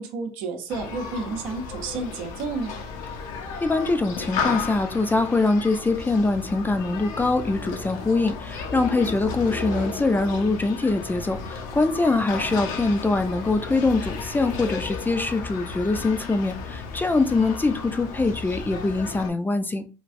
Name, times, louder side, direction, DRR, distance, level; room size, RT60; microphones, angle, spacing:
voice 1, 0.0-2.8, right 4 dB, 70° right, 0.7 m, -31 dB
Human group actions, 0.7-19.3, left 5 dB, 65° left, 0.7 m, -34 dB
voice 2, 3.6-19.9, left 3 dB, 15° left, 0.4 m, -23 dB
3.2 x 2.3 x 2.5 m
hypercardioid pair, 75°, 15 cm